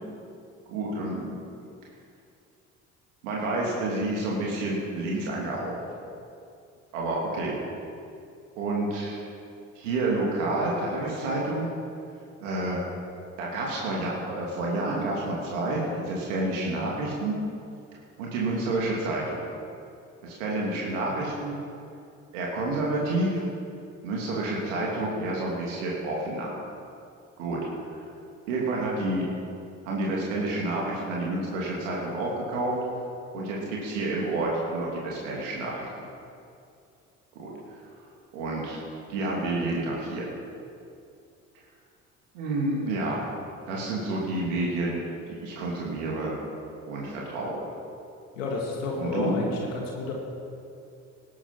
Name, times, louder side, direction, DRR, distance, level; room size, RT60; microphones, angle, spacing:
voice 1, 0.7-1.4 3.2-5.8 6.9-7.6 8.6-9.2 9.7-11.7 12.4-12.8 13.4-17.4 18.2-19.4 20.2-21.6 22.3-23.4 24.0-26.5 27.4-27.6 27.9-28.0 28.5-29.3 29.8-32.7 33.3-35.9 37.3-37.5 38.3-38.8 39.1-40.2 42.3-43.2 43.7-46.3 46.9-47.6 48.9-49.4, right 2 dB, 70° right, -3 dB, 2.9 m, -29 dB
voice 2, 48.3-50.1, left 3 dB, 75° left, -1 dB, 2.1 m, -30 dB
19.0 x 9.6 x 6.0 m, 2.5 s
figure-of-eight pair, 50°, 39 cm